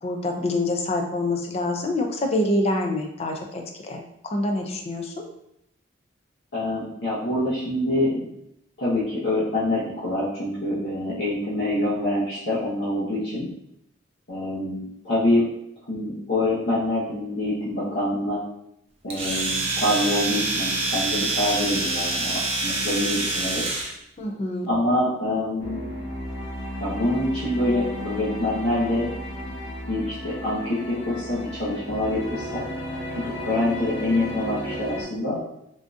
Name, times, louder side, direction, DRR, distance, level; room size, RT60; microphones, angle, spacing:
voice 1, 0.0-5.2 24.2-24.7, left 1 dB, 30° left, 3 dB, 0.4 m, -26 dB
voice 2, 6.5-8.3 8.8-13.5 14.3-15.4 15.9-18.4 19.0-23.6 24.7-25.9 26.8-29.1 29.9-32.6 33.1-35.4, left 1 dB, 65° left, -10 dB, 0.9 m, -25 dB
Domestic sounds home sounds, 19.1-23.9, right 2 dB, 30° right, 0.5 m, -26 dB
sound 1, 25.6-35.0, equal, 90° left, 1.2 m, -34 dB
3.6 x 2.3 x 2.5 m, 0.79 s
head